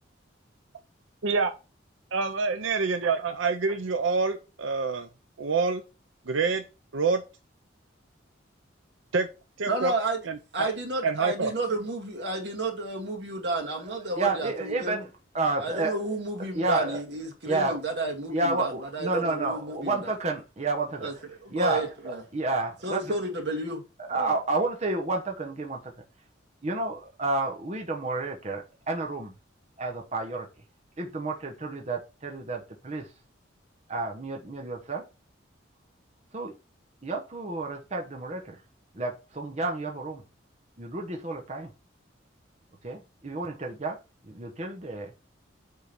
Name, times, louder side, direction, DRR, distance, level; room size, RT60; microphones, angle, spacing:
voice 1, 2.1-5.1 5.4-5.8 6.3-6.6 6.9-7.2 9.1-9.3 9.6-9.9 10.3-10.7 11.0-11.5, right 4 dB, 90° right, 0.6 m, -26 dB
voice 2, 9.7-10.2 10.5-15.0 15.6-20.1 21.0-21.1 21.4-22.2 22.8-23.8 24.1-24.3, right 2 dB, 60° right, 2.1 m, -31 dB
voice 3, 14.2-15.1 15.3-16.0 16.5-17.0 17.4-17.8 18.3-21.1 21.5-23.1 24.1-25.9 26.6-29.3 29.8-30.5 31.0-33.1 33.9-35.1 36.3-36.5 37.0-38.6 38.9-40.2 40.8-41.7 42.8-44.0 44.2-45.1, right 2 dB, 35° right, 1.0 m, -30 dB
8.4 x 3.8 x 4.4 m
head